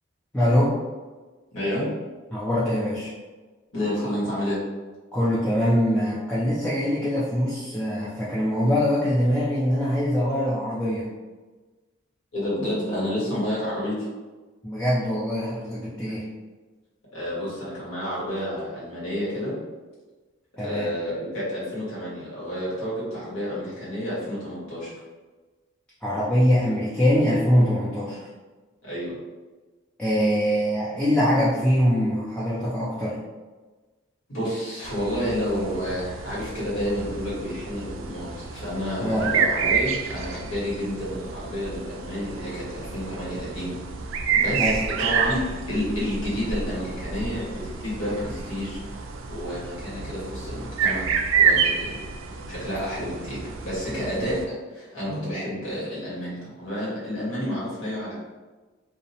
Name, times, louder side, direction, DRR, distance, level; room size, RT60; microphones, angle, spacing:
voice 1, 0.3-0.7 2.3-3.1 5.1-11.1 14.6-16.2 20.6-20.9 26.0-28.3 30.0-33.2 39.0-39.3 44.5-44.8, equal, 5° left, -10 dB, 0.4 m, -23 dB
voice 2, 1.5-1.9 3.7-4.6 12.3-14.1 16.0-16.1 17.1-19.5 20.6-24.9 28.8-29.1 34.3-43.8 44.1-45.4 45.7-51.1 51.4-52.0 52.5-58.1, equal, 90° left, -8 dB, 1.3 m, -30 dB
sound 1, 34.8-54.4, right 6 dB, 75° right, 0.3 m, -29 dB
2.7 x 2.0 x 2.8 m, 1.3 s
head